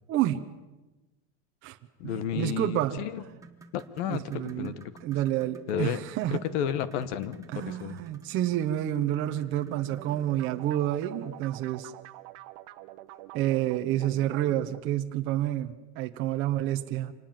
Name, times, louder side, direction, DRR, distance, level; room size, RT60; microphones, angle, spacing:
voice 1, 0.1-0.4 1.6-1.8 2.0-3.0 4.0-4.7 5.0-6.4 7.5-11.9 13.3-17.1, right 13 dB, 35° right, 5 dB, 0.9 m, -29 dB
voice 2, 2.0-3.2 3.7-4.9 5.7-6.0 6.3-8.0 14.0-14.1, left 9 dB, 60° left, 15 dB, 1.4 m, -32 dB
sound 1, 3.3-11.7 13.1-13.2 13.7-13.8 14.4-14.5, right 3 dB, 10° right, 1.3 m, -53 dB
sound 2, 9.7-14.8, right 15 dB, 55° right, 1.1 m, -46 dB
25.5 x 19.5 x 7.6 m, 1.1 s
cardioid pair, 175°, 37 cm